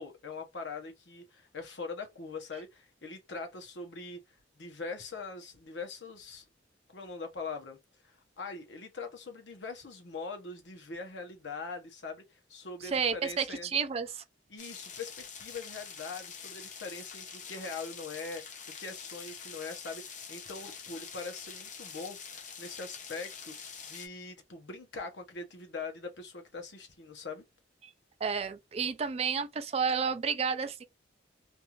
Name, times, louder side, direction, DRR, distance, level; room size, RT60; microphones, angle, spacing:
voice 1, 0.0-6.4 6.9-13.7 14.5-27.4, left 4 dB, 75° left, 0.9 m, -42 dB
voice 2, 12.8-14.2 28.2-30.8, right 6 dB, 35° right, 0.3 m, -31 dB
sound 1, 14.6-24.1, left 6 dB, 40° left, 0.6 m, -45 dB
2.6 x 2.4 x 2.9 m
head